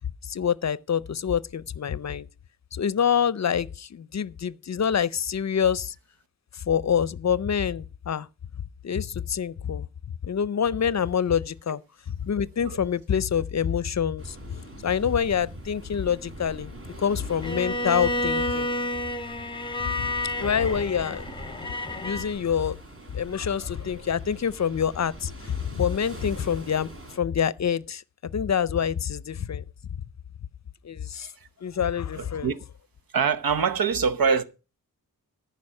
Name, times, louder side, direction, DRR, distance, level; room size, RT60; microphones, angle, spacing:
voice 1, 0.3-2.3 2.7-5.9 6.5-8.3 8.8-9.9 10.2-11.8 12.2-16.7 17.0-18.7 20.4-21.2 21.9-22.8 23.1-26.9 27.1-29.6 30.8-31.3 31.6-32.5, left 8 dB, 50° left, 0.5 m, -26 dB
sound 1, 14.2-27.2, right 1 dB, 40° right, 3.8 m, -43 dB
Bowed string instrument, 17.4-22.3, left 1 dB, 15° left, 0.9 m, -30 dB
voice 2, 32.2-32.6 33.1-34.4, right 6 dB, 85° right, 0.9 m, -24 dB
14.0 x 5.2 x 6.5 m
wide cardioid pair, 100°, 34 cm